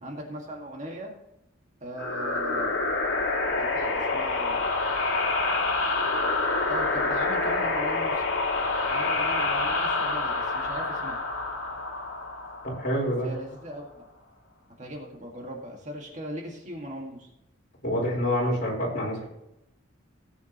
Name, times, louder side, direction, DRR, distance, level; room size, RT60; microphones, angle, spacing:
voice 1, 0.0-1.1 1.8-2.8 3.5-4.7 6.7-8.2 8.9-11.2 13.2-14.1 14.8-17.3, equal, 35° right, 0 dB, 1.8 m, -38 dB
sound 1, 2.0-13.3, left 3 dB, 85° left, 2.2 m, -27 dB
voice 2, 12.6-13.3 17.8-19.3, equal, 45° left, -3 dB, 4.2 m, -27 dB
18.0 x 8.3 x 3.0 m, 0.85 s
head